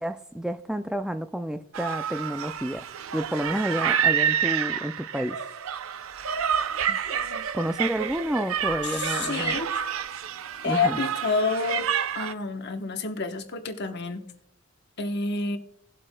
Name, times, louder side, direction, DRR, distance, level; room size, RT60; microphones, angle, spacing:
voice 1, 0.0-2.8 3.1-5.4 6.9-7.0 7.5-9.6 10.7-11.0, equal, 5° right, 8 dB, 0.3 m, -30 dB
sound 1, 1.7-12.3, right 8 dB, 85° right, 0.5 m, -28 dB
voice 2, 7.1-7.4 8.8-9.7 10.6-11.9 12.1-14.3 15.0-15.6, left 4 dB, 55° left, 6 dB, 1.0 m, -29 dB
18.0 x 7.5 x 2.2 m, 0.70 s
head